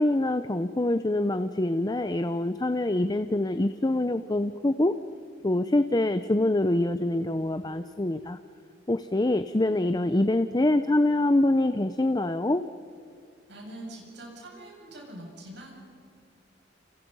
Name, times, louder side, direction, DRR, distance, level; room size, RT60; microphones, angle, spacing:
voice 1, 0.0-4.9 5.4-8.4 8.9-12.6, left 1 dB, 20° left, 10 dB, 0.7 m, -25 dB
voice 2, 13.5-15.8, right 1 dB, 65° right, -1 dB, 7.4 m, -43 dB
30.0 x 29.0 x 5.5 m, 2.5 s
head